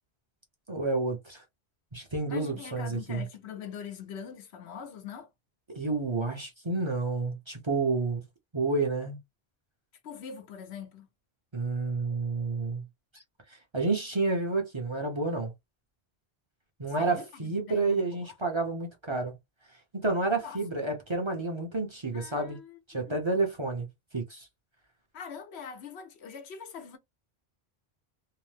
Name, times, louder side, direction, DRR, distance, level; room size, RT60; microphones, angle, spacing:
voice 1, 0.7-1.4 1.9-3.2 5.7-8.2 8.5-9.2 11.5-12.8 13.1-15.5 16.8-19.3 20.0-22.6 22.9-23.9 24.1-24.5, right 3 dB, 30° right, 0.7 m, -30 dB
voice 2, 2.3-5.3 10.0-11.1 17.0-18.3 20.4-20.6 22.1-23.2 25.1-27.0, left 7 dB, 80° left, 1.0 m, -43 dB
2.8 x 2.0 x 3.2 m
omnidirectional pair, 1.1 m